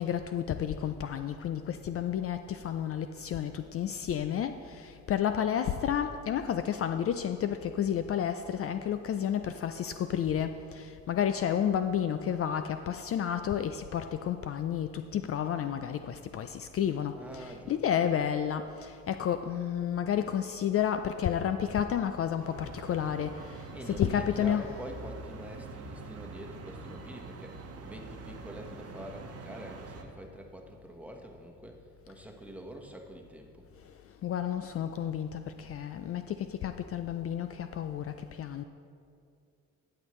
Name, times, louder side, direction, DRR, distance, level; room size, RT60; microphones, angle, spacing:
voice 1, 0.0-24.6 34.2-38.6, left 9 dB, 50° left, 9 dB, 0.4 m, -31 dB
voice 2, 17.1-17.8 23.7-33.7, right 1 dB, 5° right, 1 dB, 1.2 m, -46 dB
sound 1, 22.4-30.0, right 3 dB, 55° right, 1.1 m, -45 dB
14.0 x 8.0 x 3.1 m, 2.4 s
cardioid pair, 90°, 30 cm